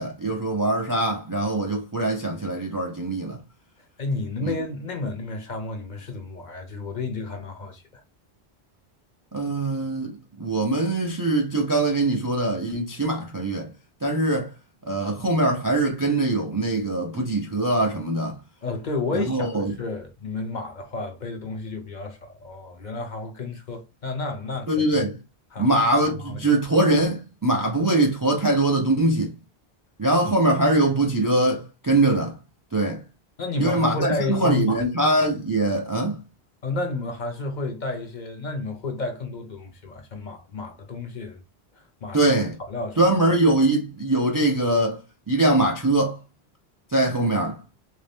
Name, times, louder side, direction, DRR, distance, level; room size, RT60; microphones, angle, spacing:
voice 1, 0.0-3.4 4.4-4.6 9.3-13.7 14.0-14.5 14.8-18.4 19.1-19.8 24.7-25.2 25.6-29.3 30.0-32.4 32.7-33.0 33.6-36.2 42.1-42.6 43.0-45.0 45.3-46.2 46.9-47.6, right 2 dB, 30° right, 0.4 m, -22 dB
voice 2, 4.0-8.0 18.6-19.5 19.8-24.8 25.5-25.8 26.2-26.4 33.4-34.8 36.6-41.4 41.7-42.3 42.7-43.0, left 3 dB, 50° left, 0.7 m, -31 dB
3.1 x 2.7 x 3.4 m
omnidirectional pair, 1.1 m